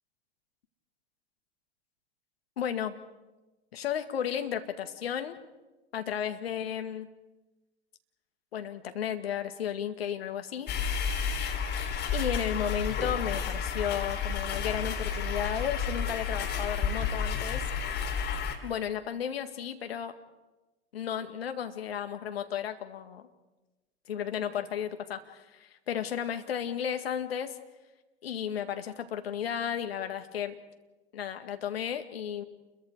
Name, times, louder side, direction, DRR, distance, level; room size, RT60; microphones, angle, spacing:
voice 1, 2.6-3.0 3.7-5.4 5.9-7.1 8.5-10.8 12.1-17.7 18.6-20.1 20.9-23.3 24.1-27.6 28.2-30.5 31.1-32.4, left 9 dB, 65° left, 8 dB, 1.9 m, -33 dB
sound 1, 10.7-18.5, left 6 dB, 30° left, 3.0 m, -31 dB
29.0 x 22.0 x 4.8 m, 1.1 s
figure-of-eight pair, 85°, 33 cm